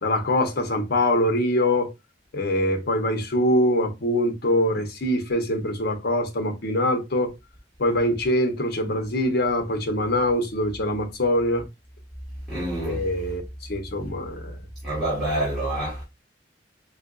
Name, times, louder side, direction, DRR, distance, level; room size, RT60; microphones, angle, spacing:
voice 1, 0.0-1.9 2.3-7.3 7.8-11.7 12.8-13.4 13.7-14.6, left 1 dB, 55° left, 0.8 m, -23 dB
voice 2, 12.5-13.0 14.8-16.0, right 1 dB, ahead, 1.6 m, -27 dB
4.5 x 2.4 x 2.4 m
head